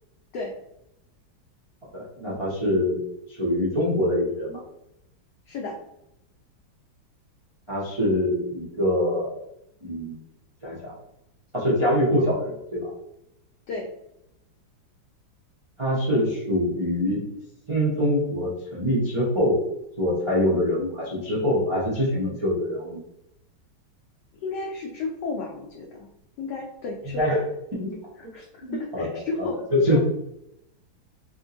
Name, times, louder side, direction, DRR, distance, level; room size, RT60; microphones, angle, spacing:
voice 1, 1.9-3.0 3.3-4.6 7.7-9.3 9.8-10.2 10.6-10.9 11.5-12.9 15.8-17.2 17.7-19.6 20.0-23.0 27.2-27.4 27.7-28.0 28.6-29.2 29.7-30.0, left 1 dB, 55° right, -7 dB, 0.3 m, -24 dB
voice 2, 24.4-26.1 26.4-27.2 28.2-29.6 29.9-30.0, left 3 dB, 70° left, -1 dB, 1.0 m, -33 dB
3.7 x 2.8 x 2.5 m, 0.82 s
omnidirectional pair, 2.2 m